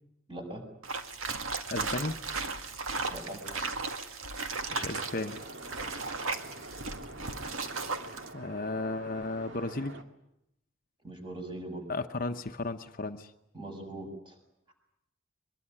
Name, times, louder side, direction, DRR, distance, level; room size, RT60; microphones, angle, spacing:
voice 1, 0.3-0.6 3.1-3.4 11.0-11.9 13.5-14.4, right 1 dB, 25° right, 3 dB, 6.7 m, -40 dB
sound 1, 0.8-8.3, right 4 dB, 90° right, 2.1 m, -36 dB
voice 2, 1.7-2.2 4.7-5.4 8.3-10.0 11.9-13.3, left 2 dB, 45° left, 7 dB, 0.9 m, -34 dB
sound 2, 4.7-10.0, right 2 dB, 60° right, 2.2 m, -46 dB
23.5 x 22.0 x 9.8 m, 0.82 s
head